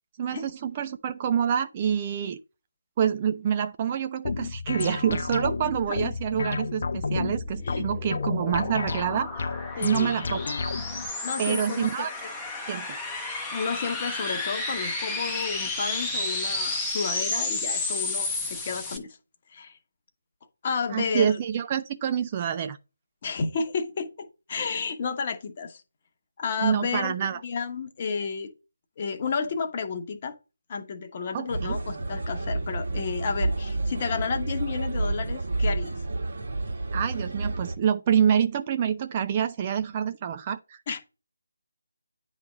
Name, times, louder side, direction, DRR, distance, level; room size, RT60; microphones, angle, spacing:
voice 1, 0.2-2.4 3.0-9.5 9.8-10.4 11.4-12.1 12.7-12.9 20.9-22.8 26.6-27.4 31.3-31.8 36.9-40.8, right 8 dB, 25° right, 0.4 m, -27 dB
sound 1, 4.2-11.1, left 4 dB, 50° left, 0.5 m, -31 dB
sound 2, 7.4-19.0, left 2 dB, 5° left, 0.7 m, -32 dB
voice 2, 9.8-10.1 11.2-12.1 13.5-19.2 19.5-19.8 20.6-21.4 23.2-25.8 26.4-28.5 29.0-30.4 30.7-35.9 40.9-41.0, left 5 dB, 35° left, 0.9 m, -31 dB
sound 3, 31.5-37.8, right 2 dB, 50° right, 1.5 m, -30 dB
9.3 x 3.2 x 5.0 m
figure-of-eight pair, 155°, 0 cm